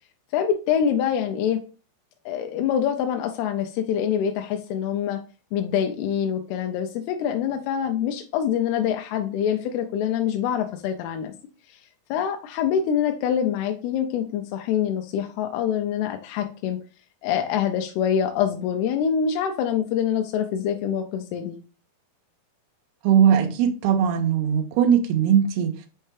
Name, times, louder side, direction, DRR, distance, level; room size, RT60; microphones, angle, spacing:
voice 1, 0.3-1.6 2.3-5.2 5.5-11.3 12.1-16.8 17.2-21.6, left 8 dB, 85° left, 2.6 m, -25 dB
voice 2, 23.0-25.9, right 8 dB, 90° right, 2.6 m, -20 dB
6.6 x 4.4 x 3.2 m
omnidirectional pair, 4.5 m